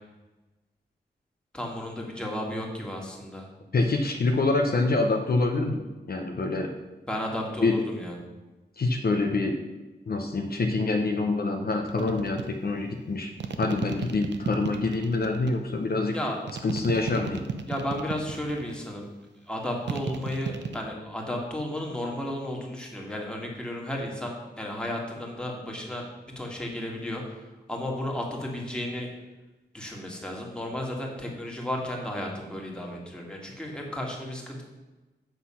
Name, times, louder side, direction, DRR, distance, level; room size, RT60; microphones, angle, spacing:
voice 1, 1.5-3.5 7.1-8.2 16.1-16.4 17.7-19.1 19.5-29.1 29.7-34.6, left 1 dB, 5° left, -1 dB, 1.8 m, -33 dB
voice 2, 3.7-5.8 6.1-6.7 7.6-7.7 8.8-9.6 10.1-13.3 13.6-16.2 16.6-17.4, left 3 dB, 55° left, 3 dB, 0.8 m, -26 dB
sound 1, 11.9-12.5 13.4-15.5 16.5-18.8 19.9-20.8, right 6 dB, 80° right, 0.7 m, -34 dB
8.2 x 6.1 x 5.7 m, 1.1 s
wide cardioid pair, 130°, 18 cm